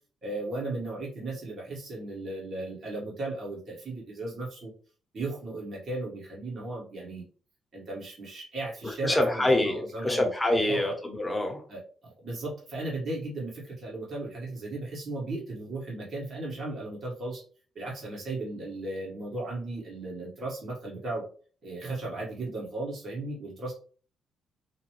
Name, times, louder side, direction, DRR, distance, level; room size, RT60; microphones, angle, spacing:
voice 1, 0.2-4.7 5.1-7.2 7.7-10.3 10.7-11.0 11.7-17.4 17.8-21.3 21.6-23.7, right 2 dB, 45° right, 1.6 m, -36 dB
voice 2, 9.0-11.6, left 1 dB, 10° left, 0.9 m, -26 dB
5.0 x 2.1 x 3.2 m
cardioid pair, 90°, 0 cm